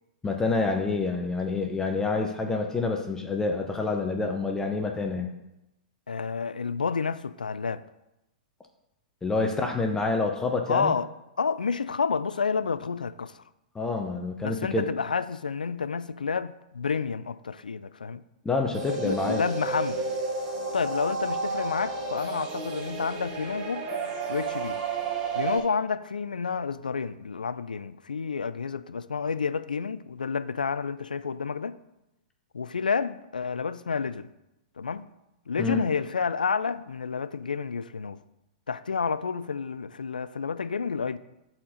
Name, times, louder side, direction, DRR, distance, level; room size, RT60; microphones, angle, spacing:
voice 1, 0.2-5.3 9.2-10.9 13.7-14.9 18.4-19.4 35.6-35.8, left 3 dB, 15° left, 0.7 m, -27 dB
voice 2, 6.1-7.8 9.4-9.7 10.7-11.1 11.4-13.4 14.4-18.2 18.7-20.1 20.7-23.9 24.3-24.8 25.3-31.8 32.5-34.3 34.8-35.1 35.5-38.2 38.7-41.2, left 5 dB, 85° left, 0.4 m, -30 dB
sound 1, 18.7-25.6, right 4 dB, 45° right, 2.0 m, -32 dB
7.5 x 4.3 x 4.9 m
figure-of-eight pair, 105°, 4 cm